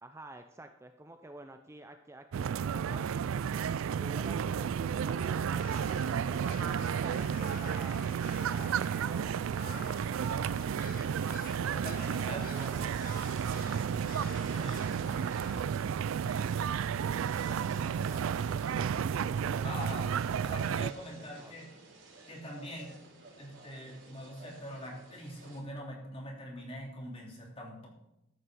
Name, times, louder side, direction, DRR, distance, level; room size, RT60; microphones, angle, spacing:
voice 1, 0.0-3.2 4.0-8.1 8.4-10.2 12.4-12.9 14.5-14.7 18.1-20.0 21.2-21.5, right 1 dB, 15° right, 6 dB, 0.5 m, -50 dB
sound 1, 2.3-20.9, right 7 dB, 85° right, 0.3 m, -32 dB
sound 2, 4.5-15.7, left 6 dB, 45° left, 0.8 m, -51 dB
sound 3, 5.8-25.6, right 2 dB, 65° right, 3.6 m, -53 dB
voice 2, 11.3-12.7 13.3-13.4 14.2-14.9 19.6-20.1 20.4-21.7 22.3-23.0 23.4-27.9, equal, 30° left, -2 dB, 3.3 m, -43 dB
13.5 x 6.5 x 6.2 m, 0.86 s
head